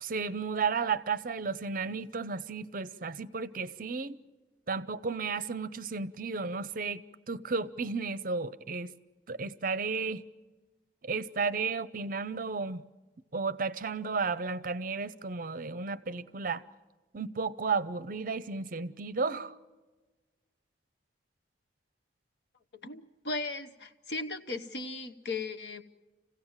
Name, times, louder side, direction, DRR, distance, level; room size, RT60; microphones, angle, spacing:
voice 1, 0.0-4.2 4.7-8.9 9.3-10.2 11.0-12.8 13.3-16.6 17.1-19.6, right 4 dB, 45° right, 0.6 m, -33 dB
voice 2, 22.7-25.8, left 3 dB, 65° left, 1.1 m, -37 dB
27.0 x 16.5 x 7.3 m
head